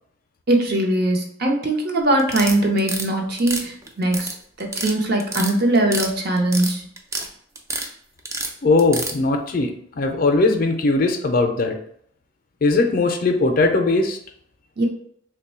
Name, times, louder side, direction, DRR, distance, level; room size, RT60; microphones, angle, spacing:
voice 1, 0.5-4.3 4.6-6.9 14.8-14.9, right 1 dB, 50° right, 1 dB, 0.7 m, -21 dB
sound 1, 2.2-3.1 3.4-4.3 4.6-4.9 5.2-6.1 6.4-7.3 7.5-7.9 8.2-9.1, right 2 dB, 15° right, 0.3 m, -27 dB
voice 2, 8.6-11.8 12.6-14.2, left 3 dB, 45° left, 5 dB, 0.4 m, -19 dB
3.0 x 2.2 x 4.2 m, 0.67 s
head